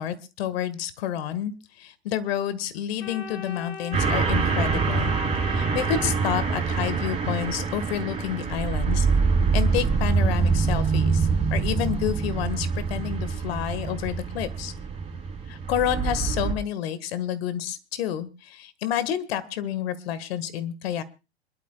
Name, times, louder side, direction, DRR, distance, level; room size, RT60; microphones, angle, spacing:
voice 1, 0.0-1.5 1.8-5.1 5.5-9.1 9.5-14.7 15.5-21.0, left 10 dB, 65° left, 14 dB, 1.7 m, -29 dB
Organ, 3.0-6.9, left 7 dB, 85° left, 2.0 m, -39 dB
sound 1, 3.9-16.5, right 5 dB, 20° right, 7.7 m, -25 dB
27.0 x 12.0 x 2.3 m, 0.30 s
hypercardioid pair, 115°, 33 cm